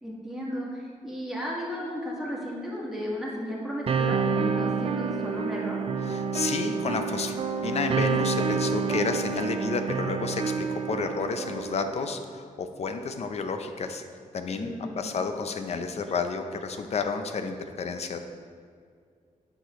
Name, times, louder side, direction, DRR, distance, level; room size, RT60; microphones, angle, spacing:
voice 1, 0.0-5.8 14.5-15.1, equal, 5° right, -5 dB, 1.5 m, -34 dB
sound 1, 3.9-11.9, right 5 dB, 45° right, 0.4 m, -28 dB
voice 2, 6.1-7.3 7.6-14.0 14.3-18.2, left 4 dB, 55° left, 7 dB, 0.5 m, -31 dB
8.9 x 5.9 x 3.1 m, 2.2 s
wide cardioid pair, 130°, 13 cm